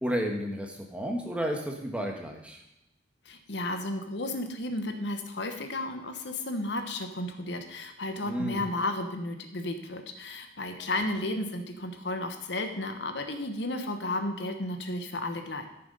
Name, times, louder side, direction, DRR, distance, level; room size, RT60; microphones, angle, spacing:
voice 1, 0.0-2.6 8.2-8.6, equal, 5° right, 2 dB, 1.4 m, -32 dB
voice 2, 3.2-15.7, left 2 dB, 65° left, 6 dB, 1.2 m, -33 dB
14.0 x 6.9 x 5.4 m, 0.85 s
head